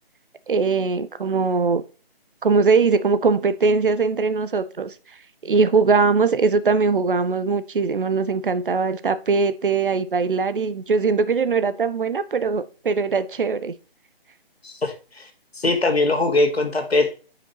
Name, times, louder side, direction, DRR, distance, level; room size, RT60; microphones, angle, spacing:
voice 1, 0.5-1.8 2.4-4.9 5.4-13.7, right 4 dB, 60° right, 0.6 m, -21 dB
voice 2, 14.6-15.3 15.6-17.1, left 2 dB, 85° left, 1.7 m, -21 dB
8.6 x 5.0 x 2.9 m
figure-of-eight pair, 160°, 31 cm